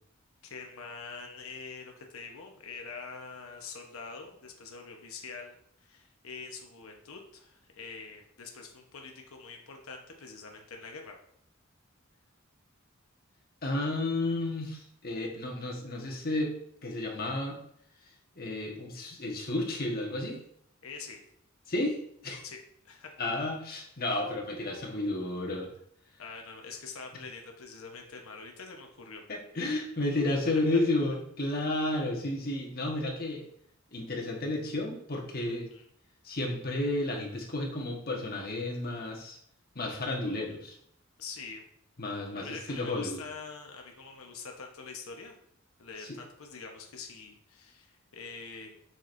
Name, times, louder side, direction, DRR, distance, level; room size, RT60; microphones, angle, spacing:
voice 1, 0.4-11.1 20.8-21.2 22.4-23.1 26.2-29.2 35.7-35.9 41.2-41.7 42.3-45.3 45.8-48.7, left 4 dB, 90° left, 2 dB, 1.0 m, -45 dB
voice 2, 13.6-16.5 16.8-17.6 18.4-20.4 21.7-22.0 22.2-22.4 23.2-25.7 29.3-33.4 33.9-35.7 36.2-39.4 39.7-40.8 42.0-43.2 46.0-46.1, left 2 dB, 45° left, -1 dB, 1.4 m, -32 dB
7.6 x 6.2 x 2.6 m, 0.69 s
head